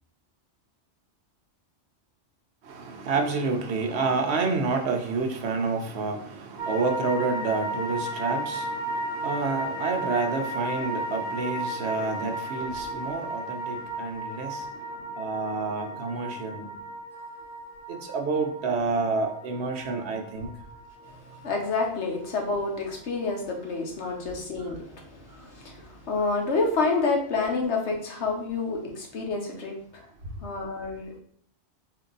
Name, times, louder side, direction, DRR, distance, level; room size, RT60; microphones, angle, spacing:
voice 1, 2.7-14.7 15.2-16.7 17.9-20.5, right 4 dB, 65° right, 3 dB, 0.9 m, -29 dB
sound 1, 6.6-22.9 23.2-23.3, right 1 dB, 20° right, 1.0 m, -34 dB
voice 2, 21.0-30.1 30.4-31.2, left 3 dB, 70° left, 1 dB, 1.2 m, -29 dB
4.5 x 2.8 x 3.8 m, 0.63 s
omnidirectional pair, 1.2 m